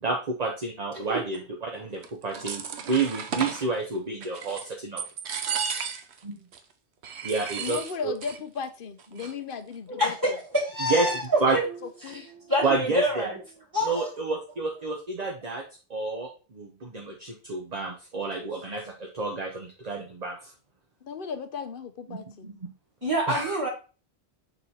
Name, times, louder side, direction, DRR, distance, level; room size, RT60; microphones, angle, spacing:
voice 1, 0.0-1.4 1.9-5.0 6.2-6.4 7.2-7.8 8.0-8.1 10.9-11.1 11.4-11.6 12.6-13.3 13.9-15.6 15.9-20.5 22.1-22.5 23.3-23.6, right 3 dB, 40° right, 1 dB, 1.1 m, -29 dB
sound 1, 2.0-3.7 4.2-4.7 5.0-6.2 6.5-6.6 7.0-8.4 8.6-8.7 9.0-9.5, right 6 dB, 80° right, 1.1 m, -33 dB
voice 2, 7.6-10.4 11.5-11.7 12.0-12.2 21.0-22.5, left 6 dB, 55° left, 9 dB, 1.0 m, -36 dB
voice 3, 10.7-11.6 12.0-13.4 13.7-14.1 23.0-23.7, equal, 20° right, -8 dB, 2.0 m, -27 dB
6.6 x 3.8 x 4.3 m, 0.34 s
omnidirectional pair, 1.1 m